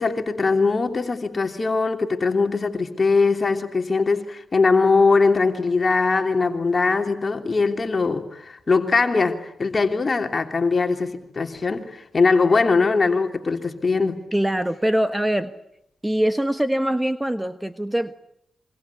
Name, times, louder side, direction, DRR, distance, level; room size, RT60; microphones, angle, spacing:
voice 1, 0.0-14.2, left 4 dB, 45° left, 3.1 m, -21 dB
voice 2, 14.3-15.5 16.0-18.2, right 1 dB, 10° right, 1.4 m, -23 dB
27.0 x 25.0 x 8.4 m
cardioid pair, 60°, 0 cm